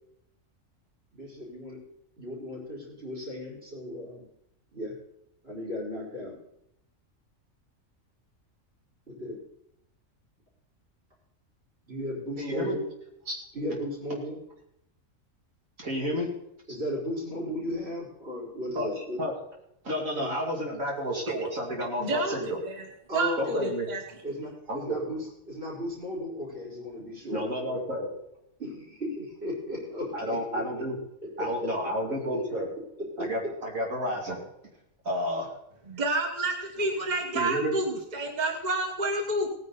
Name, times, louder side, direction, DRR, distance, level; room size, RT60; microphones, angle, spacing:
voice 1, 1.1-1.8 2.2-4.2 4.7-4.9 5.4-6.3 9.1-9.4 11.9-12.8 13.5-14.4 16.1-16.2 16.7-19.2 20.1-20.3 23.1-23.6 24.2-27.8 28.6-30.8 31.3-31.7 33.0-33.3, left 1 dB, 50° right, -3 dB, 5.1 m, -35 dB
voice 2, 12.4-12.8 13.3-13.4 14.1-14.2 15.8-16.3 18.7-19.3 19.8-22.6 23.4-23.9 24.7-25.2 27.3-28.1 30.1-31.0 31.4-32.7 33.2-34.4 35.0-35.6 37.1-37.7, equal, 85° right, -2 dB, 3.2 m, -31 dB
voice 3, 22.0-22.7 23.1-24.0 35.9-39.5, right 2 dB, 35° right, 3 dB, 1.3 m, -29 dB
18.5 x 9.8 x 4.1 m, 0.78 s
omnidirectional pair, 1.4 m